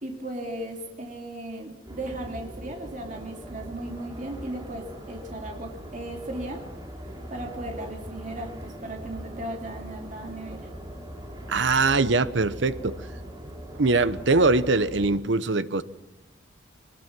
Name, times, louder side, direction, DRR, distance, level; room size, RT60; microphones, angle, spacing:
voice 1, 0.0-6.6 7.3-10.6, right 1 dB, 40° right, 2 dB, 2.7 m, -36 dB
sound 1, 1.9-15.2, equal, 20° right, 3.1 m, -41 dB
voice 2, 11.5-13.0 13.8-15.8, right 3 dB, 70° right, 14 dB, 0.9 m, -22 dB
23.0 x 20.0 x 6.1 m, 0.97 s
head